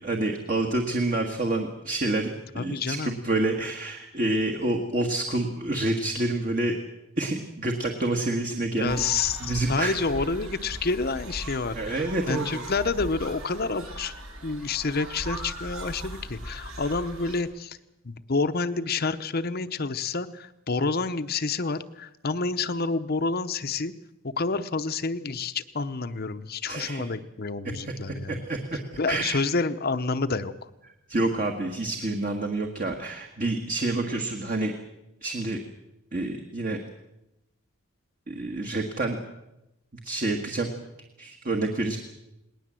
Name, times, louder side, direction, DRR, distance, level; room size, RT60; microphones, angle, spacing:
voice 1, 0.0-6.8 7.2-9.1 9.4-10.0 11.7-12.6 26.7-27.1 27.8-28.8 29.1-29.4 31.1-34.7 35.2-35.6 36.1-36.8 38.3-39.2 40.0-40.7 41.2-42.0, right 2 dB, 40° right, 3 dB, 1.6 m, -28 dB
voice 2, 2.5-3.2 8.8-14.1 14.4-17.8 18.0-23.9 24.2-28.4 29.0-30.5, left 4 dB, 45° left, 10 dB, 0.8 m, -28 dB
sound 1, 8.9-17.4, right 1 dB, 70° right, 4.6 m, -39 dB
19.5 x 19.5 x 7.6 m, 0.93 s
head